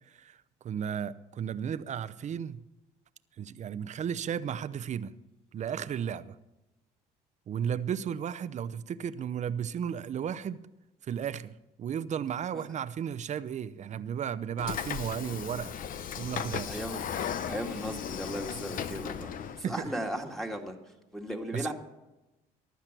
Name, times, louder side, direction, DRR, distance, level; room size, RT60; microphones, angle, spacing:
voice 1, 0.1-0.4 0.6-2.6 3.4-5.1 5.5-6.4 7.5-10.6 11.0-15.7 16.1-16.8 19.6-19.9 21.5-21.7, right 8 dB, 45° right, 0.7 m, -34 dB
Train / Sliding door, 14.6-19.6, left 8 dB, 55° left, 0.8 m, -36 dB
voice 2, 16.7-17.1 17.5-20.8 21.1-21.7, right 1 dB, ahead, 2.2 m, -36 dB
15.0 x 11.5 x 6.1 m
cardioid pair, 110°, 17 cm